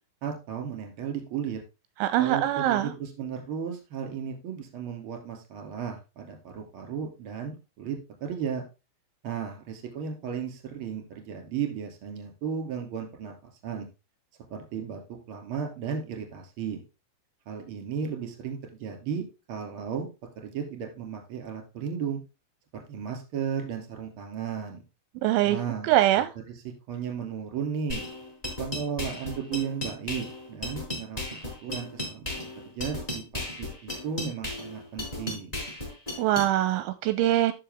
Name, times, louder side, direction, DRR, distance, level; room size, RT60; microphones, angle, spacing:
voice 1, 0.2-1.6 2.2-8.6 9.2-13.9 14.5-16.8 17.5-20.1 20.4-22.2 22.7-24.8 25.4-26.3 26.9-28.0 28.6-35.5, right 7 dB, 35° right, 3 dB, 2.6 m, -35 dB
voice 2, 2.0-2.9 25.2-25.6 25.8-26.3 36.2-37.5, right 13 dB, 85° right, 12 dB, 2.9 m, -23 dB
sound 1, 27.9-36.5, left 1 dB, 10° left, 4.4 m, -35 dB
12.5 x 5.8 x 3.5 m, 0.28 s
omnidirectional pair, 5.6 m